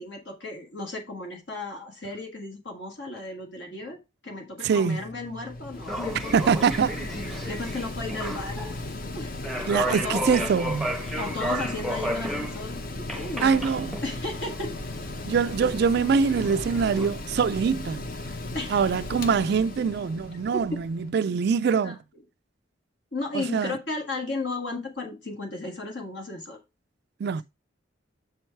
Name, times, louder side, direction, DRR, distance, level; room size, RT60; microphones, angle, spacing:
voice 1, 0.0-4.0 4.2-6.7 7.5-10.5 11.2-13.6 14.0-14.8 18.5-18.9 20.5-20.6 21.8-21.9 23.1-26.6, left 2 dB, 65° left, 1.8 m, -35 dB
voice 2, 4.6-5.0 6.3-7.1 9.7-10.9 13.4-13.9 15.3-18.0 18.7-22.0 23.3-23.7 27.2-27.4, right 6 dB, 55° right, 0.3 m, -24 dB
Mechanical fan, 4.8-21.1, left 2 dB, 50° left, 0.8 m, -36 dB
sound 1, 5.7-17.1, right 1 dB, ahead, 0.8 m, -34 dB
7.1 x 4.5 x 4.5 m
head